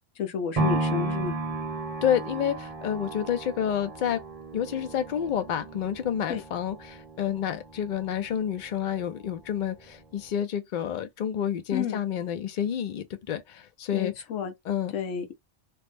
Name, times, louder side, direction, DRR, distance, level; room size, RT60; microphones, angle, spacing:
voice 1, 0.2-1.4 6.3-6.4 11.7-12.0 13.9-14.5 14.9-15.3, left 7 dB, 80° left, 1.1 m, -31 dB
sound 1, 0.6-8.7 9.1-9.2, right 2 dB, 35° right, 0.7 m, -34 dB
voice 2, 2.0-4.2 4.5-14.1 14.7-14.9, left 9 dB, 65° left, 0.5 m, -29 dB
3.0 x 2.0 x 3.2 m
omnidirectional pair, 1.3 m